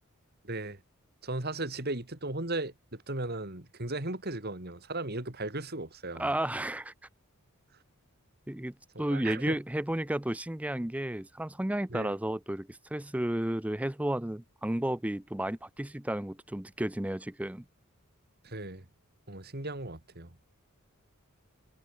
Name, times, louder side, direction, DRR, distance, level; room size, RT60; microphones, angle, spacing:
voice 1, 0.4-0.8 1.2-6.3 9.1-9.6 11.9-12.1 18.4-18.8 19.3-20.3, right 2 dB, 45° right, 2.9 m, -36 dB
voice 2, 6.2-6.9 8.5-17.6, right 1 dB, 5° right, 0.5 m, -32 dB
head